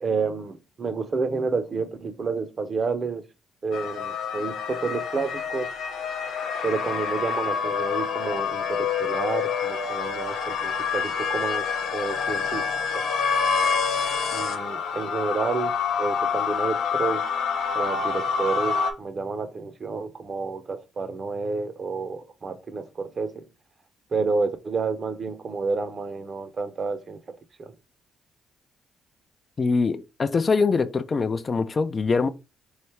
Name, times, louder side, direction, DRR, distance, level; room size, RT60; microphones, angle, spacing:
voice 1, 0.0-3.2 3.6-5.7 6.6-12.6 12.9-13.0 14.3-17.2 17.7-23.4 24.1-27.7, right 4 dB, 40° right, 0.7 m, -30 dB
sound 1, 3.7-18.9, left 6 dB, 80° left, 0.7 m, -27 dB
voice 2, 29.6-32.3, left 4 dB, 35° left, 0.4 m, -23 dB
3.2 x 2.7 x 4.5 m
cardioid pair, 90°, 0 cm